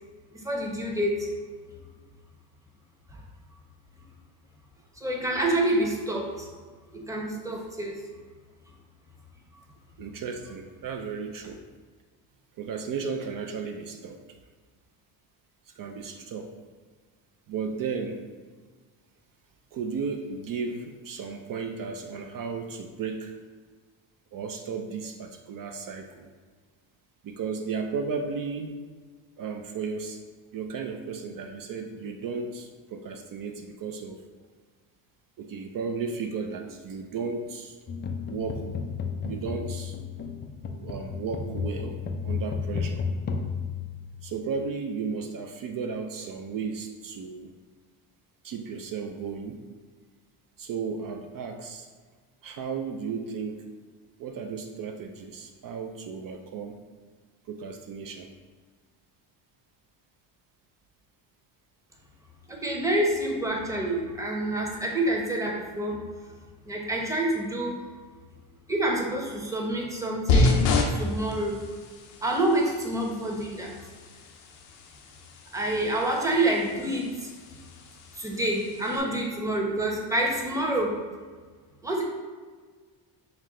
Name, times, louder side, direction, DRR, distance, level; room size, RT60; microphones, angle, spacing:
voice 1, 0.3-1.3 3.1-3.2 5.0-6.5 6.9-8.0 62.5-66.0 66.7-67.8 68.7-71.6 72.2-73.7 75.5-77.3 78.1-81.0 81.8-82.0, right 1 dB, 5° right, -1 dB, 0.8 m, -27 dB
voice 2, 10.0-11.6 12.6-14.2 15.7-16.5 17.5-18.2 19.7-23.4 24.3-26.3 27.2-28.8 29.4-30.2 30.5-34.2 35.4-37.8 38.2-38.6 39.2-40.0 40.8-42.0 42.2-43.0 44.2-47.5 48.4-49.6 50.6-51.9 52.4-53.6 54.2-56.8 57.5-58.3, right 5 dB, 45° right, 4 dB, 0.5 m, -34 dB
sound 1, 37.9-44.5, left 5 dB, 25° left, 0.3 m, -33 dB
sound 2, 70.3-79.0, left 2 dB, 80° left, 0.8 m, -30 dB
5.7 x 2.1 x 3.7 m, 1.5 s
supercardioid pair, 85°, 49 cm